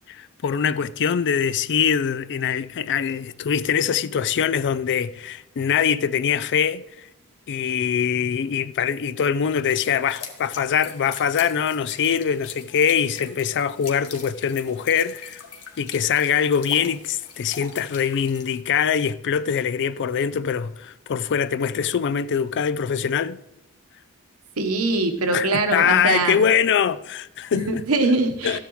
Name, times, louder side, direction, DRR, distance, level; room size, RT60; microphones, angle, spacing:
voice 1, 0.1-7.1 7.5-15.4 15.8-23.4 25.3-27.8 28.4-28.6, left 7 dB, 55° left, 0.4 m, -23 dB
sound 1, 9.6-18.6, left 6 dB, 85° left, 1.5 m, -42 dB
voice 2, 24.6-26.4 27.5-28.6, right 3 dB, 75° right, 1.2 m, -22 dB
13.5 x 10.0 x 3.1 m
head